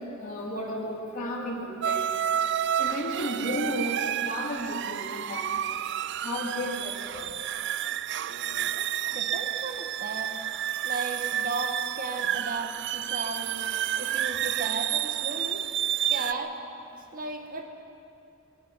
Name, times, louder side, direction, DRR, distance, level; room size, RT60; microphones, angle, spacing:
voice 1, 0.2-2.0 2.8-5.6 6.2-7.3, equal, 40° left, -5 dB, 3.3 m, -33 dB
sound 1, 1.8-16.3, right 11 dB, 60° right, 0.5 m, -30 dB
voice 2, 8.2-8.9 9.1-10.4 10.8-13.7 14.0-15.6 16.1-16.6 17.1-17.7, right 3 dB, 45° right, 3 dB, 1.7 m, -35 dB
25.5 x 22.0 x 5.9 m, 2.6 s
head